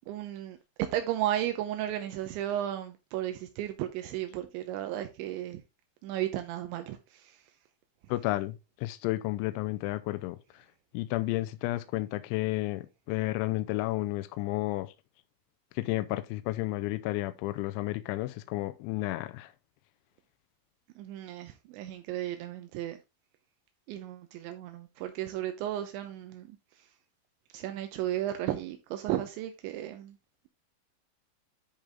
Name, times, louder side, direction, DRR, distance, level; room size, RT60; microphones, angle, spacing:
voice 1, 0.1-5.6 6.0-7.5 21.0-23.0 23.9-26.9 27.5-30.2, right 12 dB, 85° right, 2.9 m, -34 dB
voice 2, 8.1-10.4 10.9-14.9 15.8-19.5, left 17 dB, 85° left, 2.9 m, -32 dB
10.5 x 5.2 x 3.5 m
omnidirectional pair, 5.6 m